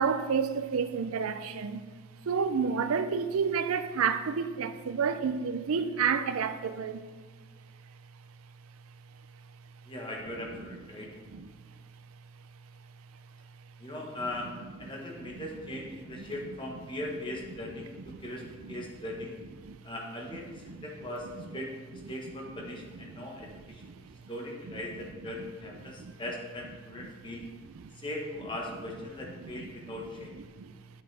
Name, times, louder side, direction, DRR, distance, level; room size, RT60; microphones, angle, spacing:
voice 1, 0.0-1.8 2.3-7.0 11.3-11.5 15.3-15.5 16.2-16.3 18.1-18.2 18.6-18.8 19.6-19.8 20.7-20.8 23.1-23.2 26.0-26.1 30.6-30.7, right 6 dB, 80° right, 0.5 m, -30 dB
voice 2, 9.9-11.1 13.8-19.4 19.8-23.8 24.3-27.4 28.0-30.4, left 1 dB, 20° left, 1.1 m, -39 dB
9.0 x 7.7 x 3.4 m
head